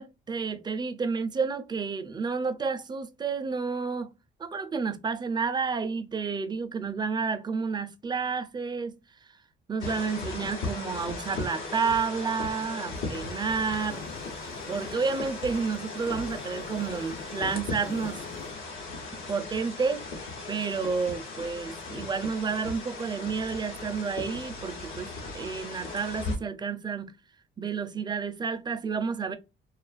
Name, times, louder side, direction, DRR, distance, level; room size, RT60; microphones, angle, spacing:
voice 1, 0.0-4.1 4.4-9.0 9.7-14.1 14.7-18.2 19.3-27.1 27.6-29.4, right 5 dB, 20° right, 0.4 m, -30 dB
sound 1, 9.8-26.4, left 3 dB, 90° left, 1.0 m, -37 dB
sound 2, 13.1-18.5, left 5 dB, 55° left, 0.6 m, -44 dB
2.4 x 2.4 x 2.3 m
cardioid pair, 90°, 20 cm